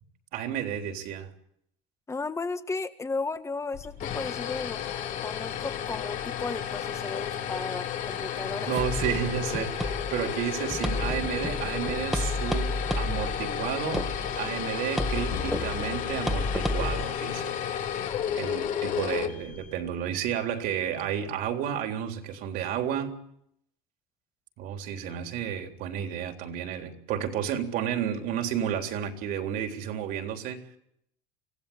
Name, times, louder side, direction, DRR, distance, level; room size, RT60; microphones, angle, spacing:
voice 1, 0.3-1.3 8.3-14.1 14.4-17.6 18.3-23.2 24.6-30.8, right 9 dB, 65° right, 5 dB, 3.6 m, -32 dB
voice 2, 2.1-4.8 5.2-8.7, left 3 dB, 15° left, 10 dB, 1.7 m, -34 dB
sound 1, 3.7-19.9, left 9 dB, 50° left, 3.0 m, -33 dB
sound 2, 8.8-17.0, left 1 dB, ahead, 1.8 m, -32 dB
sound 3, 15.3-17.9, left 9 dB, 70° left, 2.5 m, -41 dB
25.5 x 16.5 x 8.7 m, 0.75 s
supercardioid pair, 115°, 16 cm